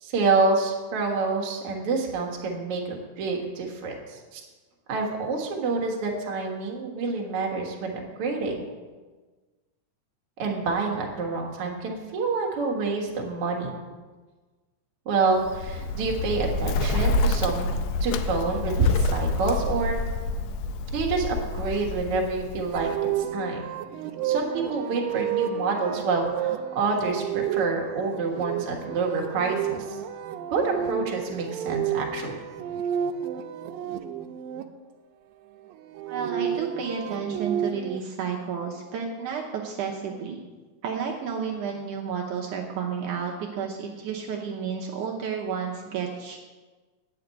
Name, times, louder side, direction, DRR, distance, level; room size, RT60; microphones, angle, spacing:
voice 1, 0.0-4.4 4.9-8.5 10.4-13.7 15.1-17.7 18.0-20.0 20.9-23.6 24.2-30.0 30.5-32.4, right 3 dB, 50° right, 0 dB, 2.1 m, -27 dB
Bird, 15.4-23.2, left 2 dB, 85° left, 1.6 m, -28 dB
sound 1, 22.7-34.6 35.8-38.0, right 9 dB, 90° right, 2.3 m, -31 dB
voice 2, 36.1-40.4 40.8-46.4, right 6 dB, 75° right, -1 dB, 2.3 m, -31 dB
9.3 x 6.0 x 8.2 m, 1.3 s
omnidirectional pair, 3.8 m